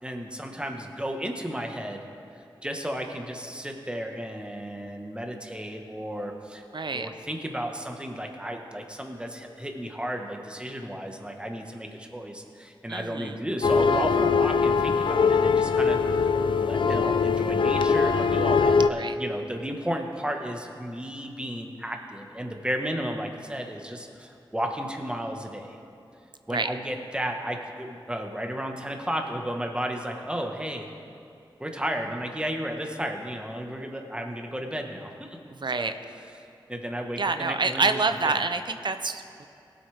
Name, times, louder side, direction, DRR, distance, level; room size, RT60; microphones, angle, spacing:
voice 1, 0.0-2.1 2.6-6.6 6.9-25.8 26.5-30.9 31.6-35.4 35.8-35.9 36.7-38.0, equal, 10° right, 3 dB, 1.4 m, -33 dB
voice 2, 6.7-7.1 12.9-13.4 19.0-19.2 26.5-26.7 35.5-35.9 37.2-39.5, right 4 dB, 60° right, 9 dB, 0.6 m, -27 dB
sound 1, 13.6-18.9, left 5 dB, 65° left, 0.4 m, -22 dB
18.0 x 8.2 x 3.5 m, 2.6 s
cardioid pair, 45°, 9 cm